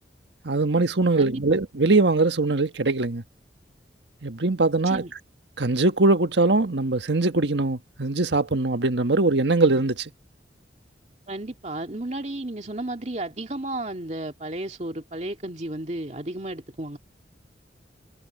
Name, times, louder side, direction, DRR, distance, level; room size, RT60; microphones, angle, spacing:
voice 1, 0.4-3.2 4.2-5.0 5.6-10.1, right 3 dB, 80° right, 1.5 m, -22 dB
voice 2, 1.2-1.6 4.9-5.1 11.3-17.0, right 1 dB, 40° right, 2.3 m, -33 dB
head